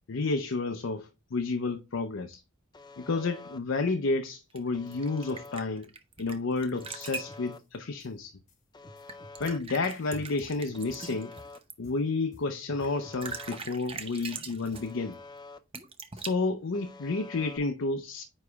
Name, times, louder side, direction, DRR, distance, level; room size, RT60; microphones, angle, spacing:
voice 1, 0.1-2.4 3.0-5.9 6.2-8.4 9.4-11.3 11.8-15.2 16.1-18.2, left 3 dB, 70° left, 0.6 m, -31 dB
Alarm, 2.7-3.6 4.7-5.6 6.7-7.6 8.7-9.6 10.7-11.6 12.7-13.6 14.7-15.6 16.7-17.6, left 3 dB, 20° left, 0.4 m, -48 dB
sound 1, 4.6-6.3 6.6-7.4 9.1-11.7 12.8-12.9 13.1-14.9 15.7-16.3, right 4 dB, 25° right, 0.7 m, -41 dB
sound 2, 6.6-7.6 8.0-8.1 8.5-8.6 8.8-11.5 11.8-12.0 12.3-14.9, equal, 35° left, 1.1 m, -52 dB
9.4 x 3.2 x 3.4 m
head